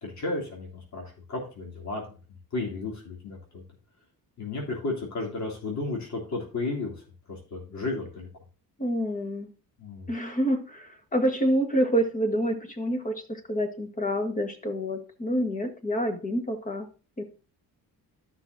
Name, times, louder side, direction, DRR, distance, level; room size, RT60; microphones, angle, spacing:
voice 1, 0.0-2.2 2.5-3.6 4.4-8.3 9.8-10.1, left 3 dB, 50° left, -2 dB, 3.2 m, -33 dB
voice 2, 8.8-9.5 10.1-16.9 17.2-17.3, equal, 20° left, 6 dB, 1.5 m, -27 dB
13.5 x 6.0 x 2.7 m, 0.35 s
cardioid pair, 140°, 36 cm